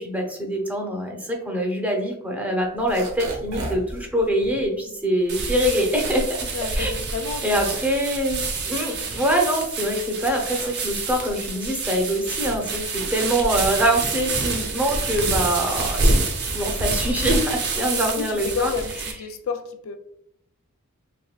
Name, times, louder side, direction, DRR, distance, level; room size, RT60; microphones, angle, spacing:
voice 1, 0.0-6.5 6.7-6.9 7.4-18.7, equal, 5° right, 0.6 m, -24 dB
sound 1, 2.7-7.9 8.3-9.7 10.2-19.0, right 1 dB, 85° right, 0.8 m, -39 dB
sound 2, 5.3-19.1, right 3 dB, 50° right, 0.6 m, -27 dB
voice 2, 6.5-7.7 17.9-20.0, left 5 dB, 65° left, 0.3 m, -30 dB
3.5 x 3.1 x 2.3 m
head